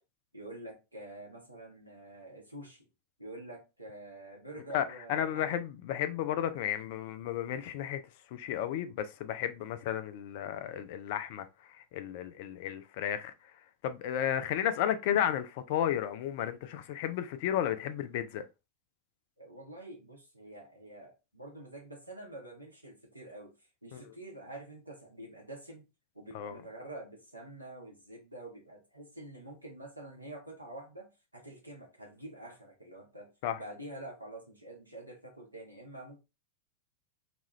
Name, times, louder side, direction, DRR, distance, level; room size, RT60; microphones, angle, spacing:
voice 1, 0.3-2.9 3.2-5.6 19.4-23.5 23.8-25.8 26.1-33.3 33.6-36.2, right 1 dB, 85° right, 0.9 m, -47 dB
voice 2, 4.7-8.0 8.3-13.5 13.8-18.4 23.9-24.1 26.3-26.6 33.4-33.6, left 10 dB, 50° left, 0.4 m, -33 dB
2.9 x 2.4 x 2.9 m
figure-of-eight pair, 90°, 0 cm